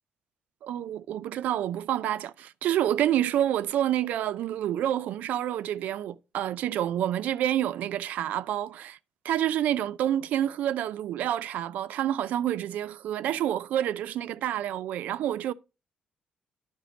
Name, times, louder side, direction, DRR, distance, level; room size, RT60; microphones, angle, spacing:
voice 1, 0.6-9.0 9.2-15.5, right 11 dB, 85° right, 0.4 m, -28 dB
10.5 x 5.0 x 3.9 m
cardioid pair, 145°, 3 cm